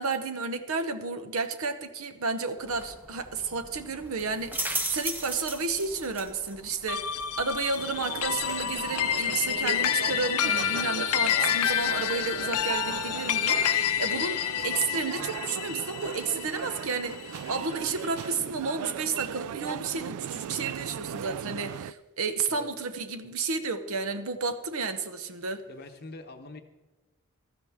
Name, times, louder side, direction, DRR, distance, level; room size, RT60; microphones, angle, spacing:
voice 1, 0.0-25.6, right 4 dB, 70° right, 9 dB, 0.8 m, -32 dB
Kicking the fence, 2.6-13.2, right 1 dB, 10° right, 0.9 m, -40 dB
sound 1, 6.9-17.5, left 10 dB, 80° left, 0.6 m, -29 dB
sound 2, 7.8-21.9, right 9 dB, 90° right, 0.3 m, -38 dB
voice 2, 25.7-26.6, left 2 dB, 45° left, 6 dB, 0.8 m, -44 dB
15.5 x 12.5 x 3.5 m, 1.1 s
head